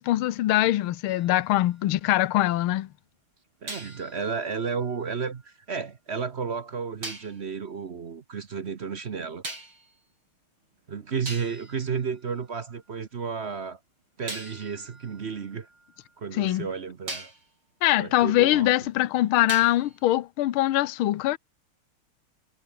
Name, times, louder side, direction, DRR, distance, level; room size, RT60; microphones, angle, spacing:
voice 1, 0.0-2.9 16.3-16.7 17.8-21.4, left 15 dB, 80° left, 1.7 m, -23 dB
sound 1, 1.1-2.5 3.7-5.8 7.0-7.4 9.4-10.0 10.8-10.9 11.3-12.9 14.3-16.4 17.1-17.5 19.5-20.1, right 2 dB, 70° right, 8.9 m, -42 dB
voice 2, 3.6-9.4 10.9-13.8 14.2-15.7 16.2-17.3 18.0-18.7, right 6 dB, 45° right, 0.9 m, -32 dB
omnidirectional pair, 2.3 m